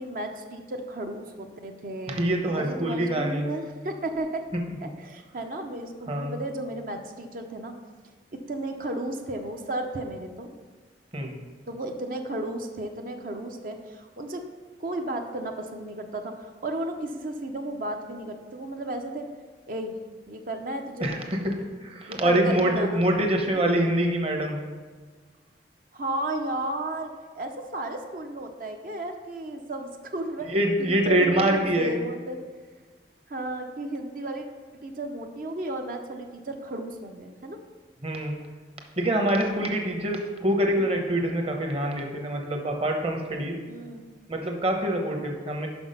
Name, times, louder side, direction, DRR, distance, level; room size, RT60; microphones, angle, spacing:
voice 1, 0.0-2.2 2.5-4.4 4.8-7.8 8.3-10.5 11.7-14.4 14.8-19.3 19.7-20.0 20.3-21.1 22.1-23.0 23.4-23.6 25.9-32.4 33.3-34.5 34.7-37.6 40.7-40.9 43.7-44.0, right 1 dB, 50° right, 4 dB, 0.6 m, -34 dB
voice 2, 2.1-3.5 6.1-6.3 11.1-11.4 21.0-21.5 21.8-24.7 30.5-31.9 38.0-38.5 39.0-43.6 44.3-45.7, right 1 dB, 35° right, 2 dB, 0.9 m, -25 dB
6.0 x 5.8 x 5.4 m, 1.5 s
head